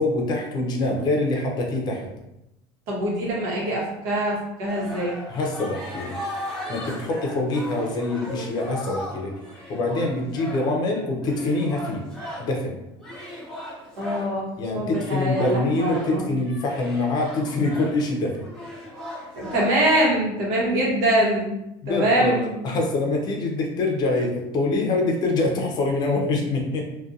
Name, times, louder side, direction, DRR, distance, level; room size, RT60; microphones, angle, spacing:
voice 1, 0.0-2.1 5.3-6.2 6.7-9.3 9.7-12.0 12.4-12.8 14.6-18.4 21.8-26.9, left 2 dB, 35° left, 0 dB, 0.6 m, -25 dB
voice 2, 2.9-5.2 14.0-14.5 14.7-16.2 19.3-21.6 21.9-22.6, right 1 dB, 70° right, -3 dB, 1.0 m, -23 dB
sound 1, 4.7-12.6 13.0-14.4 14.9-19.9, equal, 5° left, 0.8 m, -37 dB
2.5 x 2.2 x 2.5 m, 0.88 s
cardioid pair, 145°, 12 cm